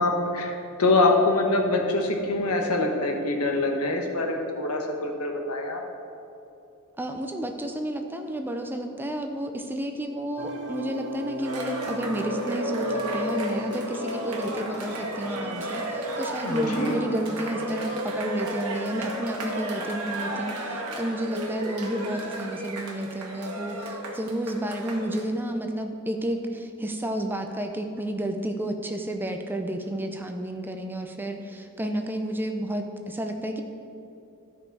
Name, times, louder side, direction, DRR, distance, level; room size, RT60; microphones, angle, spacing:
voice 1, 0.0-5.8 16.4-17.0, left 2 dB, 85° left, 2 dB, 1.2 m, -24 dB
voice 2, 7.0-33.6, right 1 dB, 10° right, 4 dB, 0.5 m, -31 dB
sound 1, 10.4-16.2, equal, 55° right, 0.8 m, -40 dB
Cheering, 11.4-25.3, right 1 dB, 80° right, 1.4 m, -33 dB
13.0 x 5.4 x 4.6 m, 2.8 s
head